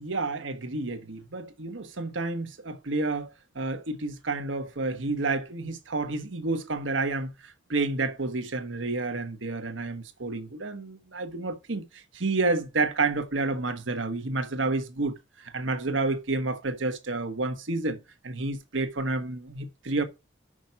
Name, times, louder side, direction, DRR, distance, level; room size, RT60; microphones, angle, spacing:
voice 1, 0.0-3.3 3.5-20.0, right 3 dB, 75° right, 1.3 m, -30 dB
6.2 x 5.5 x 5.8 m
head